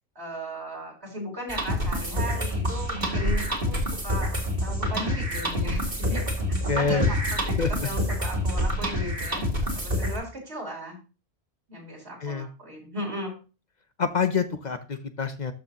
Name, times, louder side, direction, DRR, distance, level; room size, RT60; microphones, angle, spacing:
voice 1, 0.2-4.3 4.6-6.2 6.8-11.0 11.7-13.3, equal, 75° right, -1 dB, 4.0 m, -36 dB
sound 1, 1.5-10.2, equal, 45° right, 2.3 m, -27 dB
voice 2, 6.7-7.1 7.6-7.9 12.2-12.5 14.0-15.5, left 5 dB, 50° left, 10 dB, 0.7 m, -27 dB
12.5 x 6.6 x 2.9 m, 0.34 s
omnidirectional pair, 1.1 m